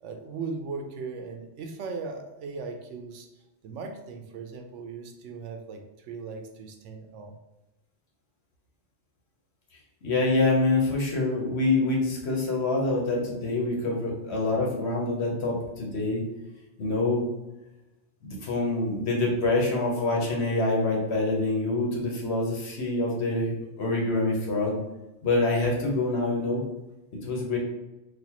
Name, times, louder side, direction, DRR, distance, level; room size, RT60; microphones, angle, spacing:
voice 1, 0.0-3.3 3.6-5.8 6.1-7.4, right 4 dB, 85° right, 4 dB, 0.9 m, -38 dB
voice 2, 10.0-16.2 16.8-17.3 18.2-24.8 25.2-26.6 27.1-27.6, left 2 dB, 65° left, -1 dB, 1.2 m, -26 dB
4.2 x 2.4 x 2.8 m, 0.98 s
omnidirectional pair, 1.2 m